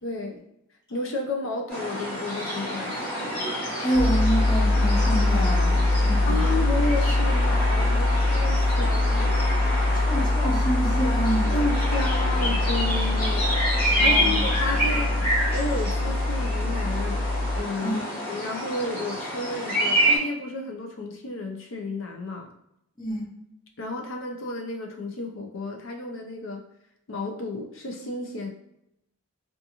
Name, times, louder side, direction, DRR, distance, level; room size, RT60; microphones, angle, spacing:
voice 1, 0.0-0.4 0.9-3.4 6.3-9.9 11.4-13.6 14.0-15.2 15.5-17.3 17.6-18.0 18.3-22.5 23.8-26.6 27.1-28.5, left 2 dB, 65° left, 2 dB, 0.5 m, -32 dB
sound 1, 1.7-20.2, equal, 45° left, 1.1 m, -28 dB
voice 2, 3.8-6.6 9.9-11.5 14.0-14.4 17.8-18.0 23.0-23.3, right 1 dB, 20° left, -2 dB, 0.5 m, -28 dB
sound 2, 3.9-17.6, left 2 dB, 35° right, 0.4 m, -23 dB
2.5 x 2.4 x 2.8 m, 0.81 s
head